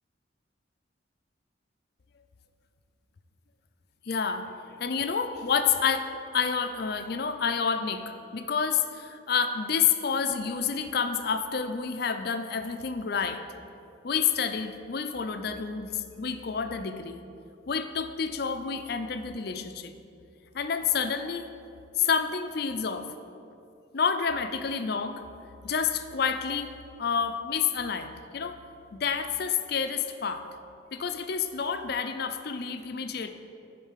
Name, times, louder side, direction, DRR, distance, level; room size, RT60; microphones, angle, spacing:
voice 1, 4.1-13.4 14.0-17.2 17.7-19.9 20.5-21.5 22.0-23.1 23.9-25.2 25.6-26.7 27.0-28.6 28.9-30.5 30.9-33.3, left 6 dB, 50° left, 8 dB, 0.4 m, -29 dB
11.0 x 3.9 x 5.6 m, 2.6 s
head